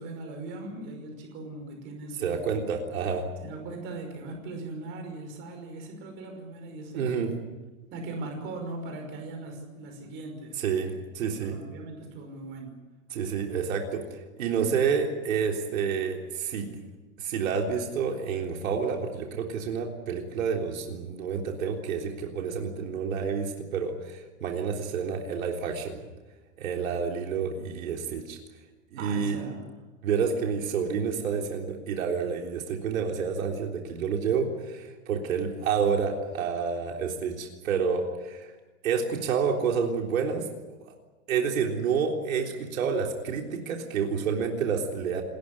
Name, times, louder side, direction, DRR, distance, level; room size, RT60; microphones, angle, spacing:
voice 1, 0.0-2.5 3.4-7.4 7.9-10.6 10.9-11.0 11.4-12.8 14.6-14.7 29.0-29.7, right 2 dB, 25° right, 3 dB, 5.6 m, -39 dB
voice 2, 2.2-3.2 6.9-7.3 10.6-11.6 13.1-16.7 17.2-26.0 26.6-28.4 28.9-29.4 30.0-38.5 38.8-40.4 41.3-45.2, right 6 dB, 75° right, 2 dB, 3.7 m, -29 dB
28.0 x 14.5 x 9.9 m, 1.2 s
supercardioid pair, 165°, 41 cm